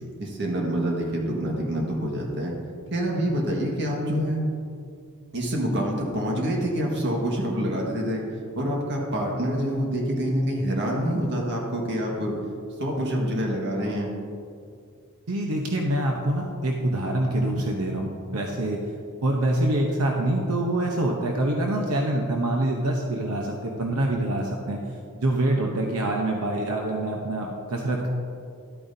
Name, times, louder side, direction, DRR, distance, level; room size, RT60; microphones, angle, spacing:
voice 1, 0.2-2.5 2.9-4.5 5.3-8.2 8.5-12.3 12.8-14.1, equal, 55° right, -1 dB, 1.6 m, -26 dB
voice 2, 15.3-18.8 19.2-24.8 25.2-28.1, right 1 dB, 85° right, 1 dB, 0.9 m, -25 dB
12.0 x 8.7 x 2.7 m, 2.3 s
head